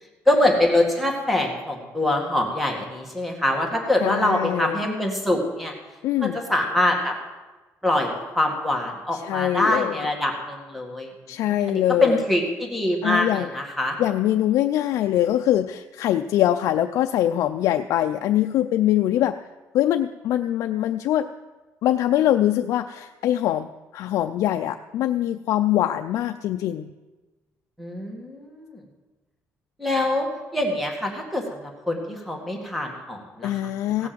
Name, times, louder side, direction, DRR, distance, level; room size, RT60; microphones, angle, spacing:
voice 1, 0.2-5.7 6.2-7.1 7.8-11.1 11.5-14.0 27.8-28.8 29.8-33.6 34.0-34.1, left 1 dB, ahead, 2 dB, 1.8 m, -24 dB
voice 2, 4.0-4.8 6.0-6.4 9.1-10.0 11.3-12.2 13.0-13.5 14.0-19.4 19.7-21.3 21.8-26.9 33.4-34.1, left 12 dB, 75° left, 6 dB, 0.5 m, -23 dB
16.5 x 6.1 x 7.6 m, 1.2 s
cardioid pair, 155°, 6 cm